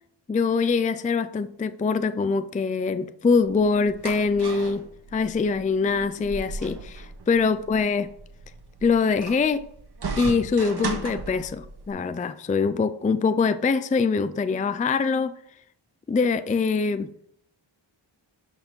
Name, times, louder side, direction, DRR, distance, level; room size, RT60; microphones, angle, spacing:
voice 1, 0.3-4.8 5.1-8.1 8.8-9.6 10.2-15.3 16.1-17.1, left 4 dB, 20° left, 12 dB, 0.4 m, -23 dB
sound 1, 3.4-11.9, right 3 dB, 55° right, 1.6 m, -36 dB
12.0 x 4.4 x 5.3 m, 0.68 s
wide cardioid pair, 115°, 47 cm